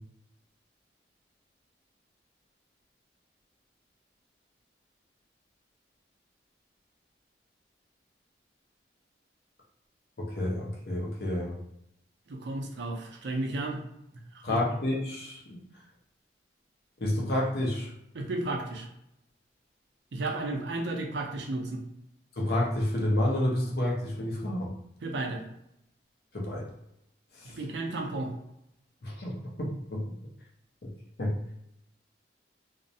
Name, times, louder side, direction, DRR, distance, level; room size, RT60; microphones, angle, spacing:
voice 1, 10.2-11.6 14.4-15.6 17.0-17.9 22.4-24.7 26.3-26.7 27.4-27.5 29.0-30.0 30.8-30.9 31.2-31.4, left 1 dB, 60° left, -2 dB, 0.6 m, -29 dB
voice 2, 12.3-13.8 14.3-14.8 18.1-18.9 20.1-21.8 25.0-25.4 27.4-28.3, right 2 dB, 80° right, 2 dB, 0.5 m, -33 dB
2.4 x 2.0 x 2.7 m, 0.79 s
head